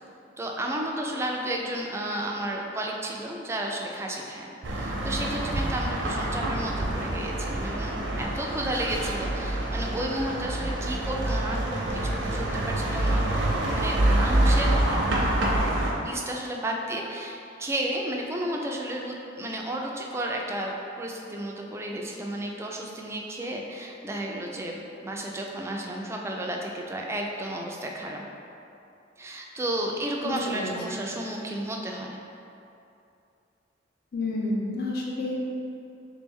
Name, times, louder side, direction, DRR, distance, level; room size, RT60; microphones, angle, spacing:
voice 1, 0.4-4.5 4.7-13.4 13.7-14.8 16.0-24.8 25.0-28.3 29.2-32.2, right 1 dB, 15° right, 0 dB, 0.3 m, -32 dB
sound 1, 4.6-15.9, right 1 dB, 75° right, 0.6 m, -26 dB
voice 2, 30.2-31.0 34.1-35.7, left 1 dB, 55° left, -3 dB, 0.6 m, -30 dB
3.4 x 3.1 x 3.5 m, 2.7 s
head